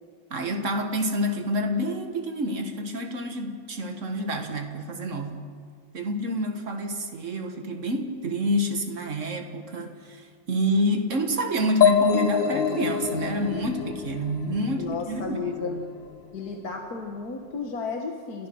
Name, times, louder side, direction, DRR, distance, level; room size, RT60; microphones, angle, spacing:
voice 1, 0.3-5.4 5.9-15.8, equal, 40° right, 5 dB, 1.9 m, -28 dB
sound 1, 11.8-15.5, left 8 dB, 65° left, 1.9 m, -25 dB
voice 2, 14.8-15.8 16.3-18.5, left 5 dB, 50° left, 3 dB, 1.7 m, -33 dB
29.5 x 14.5 x 6.3 m, 2.1 s
omnidirectional pair, 2.2 m